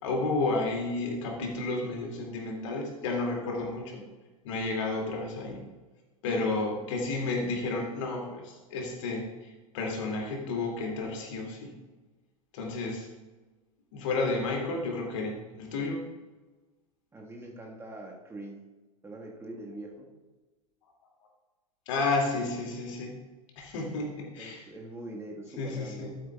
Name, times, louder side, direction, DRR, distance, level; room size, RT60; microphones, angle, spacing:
voice 1, 0.0-4.0 4.4-5.7 6.2-11.7 12.5-13.1 13.9-16.0 21.9-23.2 23.6-24.6 25.6-26.1, left 3 dB, 55° left, 1 dB, 2.2 m, -31 dB
voice 2, 17.1-18.6 19.0-20.1 24.4-26.2, right 1 dB, 15° right, -1 dB, 1.4 m, -43 dB
12.5 x 8.3 x 2.3 m, 1.2 s
figure-of-eight pair, 90°, 19 cm